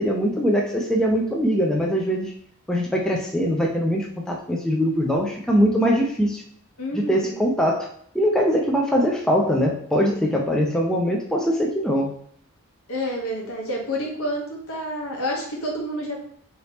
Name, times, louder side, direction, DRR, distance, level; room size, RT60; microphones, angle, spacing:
voice 1, 0.0-2.3 2.7-6.4 6.9-7.9 8.1-12.1, equal, 5° left, -1 dB, 0.3 m, -22 dB
voice 2, 6.8-7.4 12.9-16.2, equal, 70° left, -1 dB, 1.0 m, -29 dB
2.9 x 2.8 x 3.2 m, 0.62 s
head